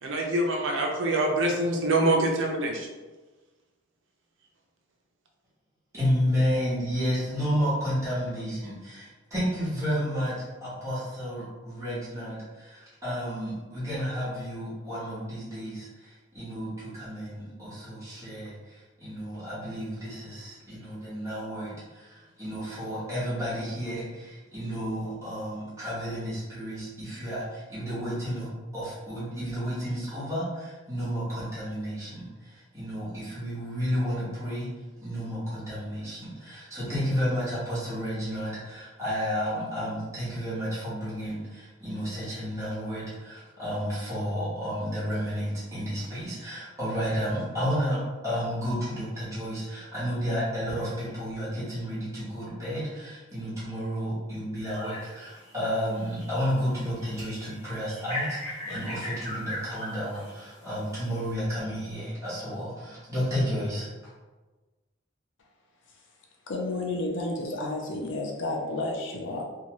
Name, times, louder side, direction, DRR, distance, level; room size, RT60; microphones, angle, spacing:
voice 1, 0.0-2.9, right 1 dB, 70° right, 1 dB, 0.5 m, -25 dB
voice 2, 5.9-34.7 35.0-63.9, equal, 15° right, -10 dB, 1.1 m, -31 dB
sound 1, 54.6-55.7 56.1-61.3, left 1 dB, 30° left, 1.1 m, -38 dB
voice 3, 66.5-69.4, left 2 dB, 65° left, 1 dB, 0.4 m, -31 dB
2.7 x 2.3 x 2.9 m, 1.2 s
head